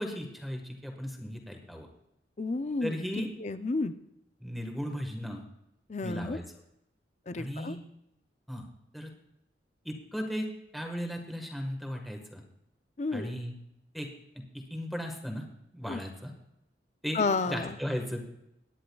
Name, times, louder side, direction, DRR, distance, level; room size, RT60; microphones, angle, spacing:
voice 1, 0.0-1.9 2.8-3.3 4.4-5.4 6.0-6.4 7.4-7.8 8.5-8.7 8.9-9.1 9.8-12.4 13.1-13.5 13.9-14.1 14.3-15.5 15.7-16.3 17.0-18.2, equal, ahead, 2 dB, 1.4 m, -36 dB
voice 2, 2.4-2.9 3.4-3.9 5.9-6.4 7.3-7.8 13.0-13.3 15.9-16.0 17.1-17.7, left 3 dB, 40° left, 11 dB, 0.5 m, -31 dB
21.5 x 10.0 x 2.3 m, 0.83 s
head